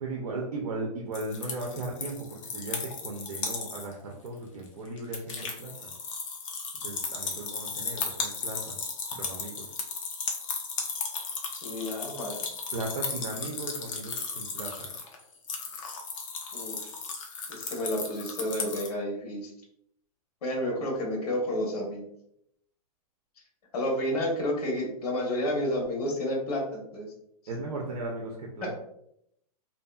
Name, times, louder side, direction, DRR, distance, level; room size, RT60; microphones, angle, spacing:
voice 1, 0.0-5.9 6.8-8.8 9.1-9.7 12.7-14.9 27.5-28.7, right 2 dB, 80° right, -1 dB, 0.7 m, -37 dB
sound 1, 1.1-3.9 4.3-4.4 4.7-18.9, left 4 dB, 55° left, 0.6 m, -35 dB
voice 2, 11.6-12.4 16.5-16.8 17.5-19.5 20.4-22.0 23.7-27.1 28.6-28.7, left 1 dB, 75° left, 0 dB, 1.1 m, -30 dB
2.8 x 2.6 x 2.3 m, 0.74 s
supercardioid pair, 170°, 20 cm